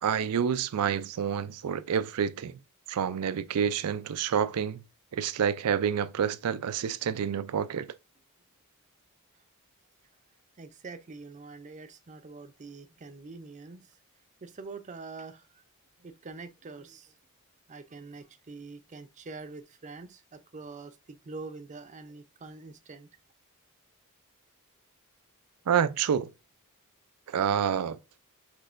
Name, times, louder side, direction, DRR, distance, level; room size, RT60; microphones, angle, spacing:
voice 1, 0.0-2.6 2.9-4.8 5.1-7.9 25.7-26.3 27.3-28.0, right 8 dB, 85° right, 0.4 m, -28 dB
voice 2, 10.6-14.0 14.4-15.6 16.0-17.1 17.7-23.1, right 3 dB, 35° right, 0.5 m, -45 dB
6.0 x 3.2 x 2.5 m
head